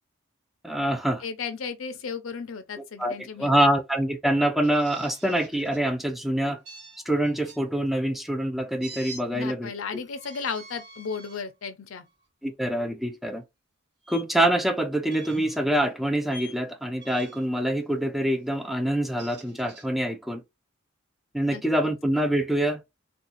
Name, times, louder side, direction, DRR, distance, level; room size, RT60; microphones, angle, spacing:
voice 1, 0.6-1.2 3.0-6.6 7.1-9.7 12.4-13.4 14.1-20.4 21.3-22.8, right 1 dB, ahead, 0.4 m, -25 dB
voice 2, 1.2-3.7 9.3-12.1 21.5-21.9, left 5 dB, 75° left, 0.6 m, -35 dB
sound 1, 4.6-5.8 6.6-7.6 8.8-9.2 10.1-11.4 12.0-12.2 14.0-14.2 15.1-15.6 16.3-16.6 17.0-17.5 18.9-19.9, right 2 dB, 55° right, 1.0 m, -46 dB
2.6 x 2.3 x 3.9 m
head